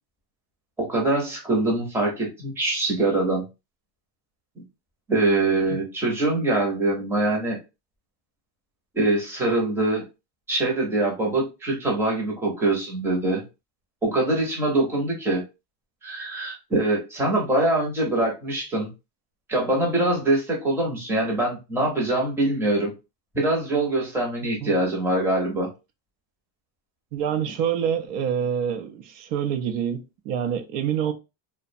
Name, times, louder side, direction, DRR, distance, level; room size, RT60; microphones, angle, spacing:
voice 1, 0.8-3.4 5.1-7.6 8.9-10.0 10.5-13.4 14.0-15.4 16.0-18.9 19.5-22.9 23.3-25.7, right 2 dB, 5° right, 0.6 m, -23 dB
voice 2, 27.1-31.1, right 8 dB, 70° right, 0.6 m, -26 dB
2.4 x 2.1 x 2.5 m
cardioid pair, 150°, 49 cm